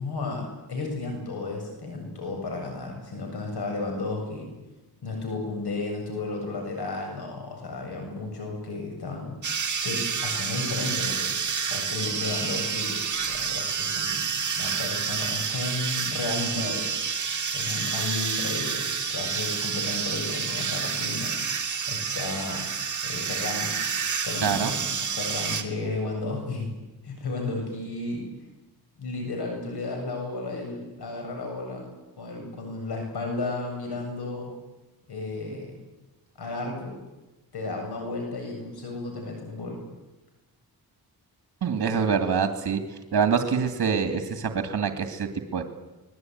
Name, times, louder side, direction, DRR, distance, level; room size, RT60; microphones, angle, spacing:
voice 1, 0.0-4.5 5.0-9.4 9.8-11.3 11.7-14.3 14.6-16.9 17.5-21.3 21.9-22.6 23.0-23.7 24.2-26.7 27.0-28.2 29.0-31.9 32.2-34.5 35.1-35.8 36.4-36.9 37.5-39.8, left 3 dB, 75° left, 2 dB, 7.8 m, -33 dB
sound 1, 9.4-25.6, right 6 dB, 50° right, 2.7 m, -29 dB
voice 2, 24.4-24.7 41.6-42.8 43.1-45.6, right 6 dB, 65° right, 6 dB, 2.6 m, -25 dB
25.0 x 21.0 x 9.5 m, 1.0 s
wide cardioid pair, 100°, 39 cm